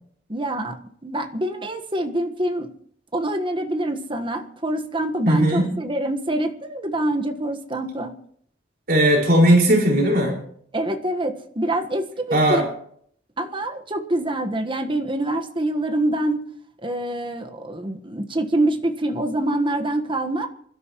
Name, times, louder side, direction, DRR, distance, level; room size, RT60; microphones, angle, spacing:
voice 1, 0.3-2.7 3.1-8.1 10.7-12.7 13.4-16.4 16.8-20.5, right 1 dB, 30° right, 5 dB, 1.4 m, -25 dB
voice 2, 5.3-5.7 8.9-10.4 12.3-12.6, right 1 dB, 60° right, -1 dB, 5.3 m, -17 dB
27.0 x 13.0 x 3.1 m, 0.63 s
head